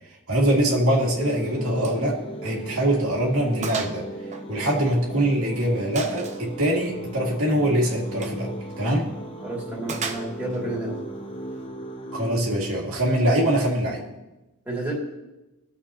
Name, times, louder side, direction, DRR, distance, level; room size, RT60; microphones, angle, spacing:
voice 1, 0.3-4.0 4.5-9.1 12.1-14.0, right 1 dB, 70° right, -3 dB, 2.2 m, -23 dB
sound 1, 1.2-12.4, right 1 dB, 25° left, 0.7 m, -36 dB
Gunshot gunfire, 1.8-2.0 2.4-2.5 3.0-3.1 3.6-4.0 4.3-5.3 6.0-6.5 8.1-8.4 9.9-10.6, right 5 dB, 30° right, 0.7 m, -34 dB
voice 2, 9.4-11.0 14.6-15.0, right 2 dB, 10° right, -6 dB, 2.7 m, -30 dB
20.5 x 7.2 x 2.9 m, 1.0 s
head